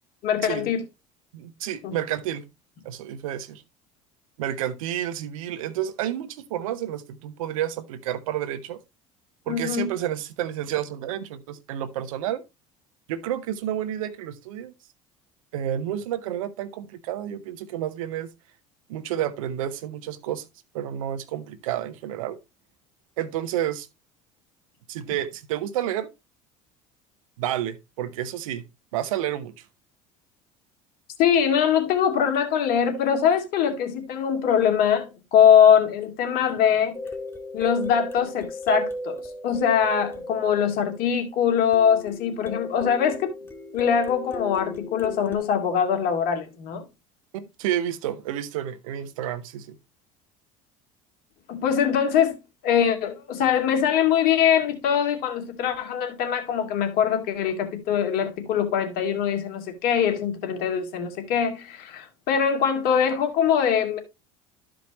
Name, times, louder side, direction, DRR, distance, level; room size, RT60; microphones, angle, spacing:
voice 1, 0.2-0.8 1.8-1.9 9.5-9.9 31.2-36.9 37.5-43.3 43.7-46.8 51.5-52.4 52.6-64.0, left 8 dB, 60° left, 2.4 m, -22 dB
voice 2, 1.3-2.4 2.8-3.6 4.4-8.8 9.5-12.4 13.1-14.7 15.5-18.3 18.9-20.4 20.7-22.4 23.2-23.9 24.9-26.1 27.4-28.6 28.9-29.5 47.3-49.8, right 11 dB, 85° right, 1.0 m, -30 dB
sound 1, 36.9-41.2 41.7-45.4, left 1 dB, 15° left, 1.8 m, -35 dB
13.0 x 5.1 x 3.0 m
supercardioid pair, 85°, 17 cm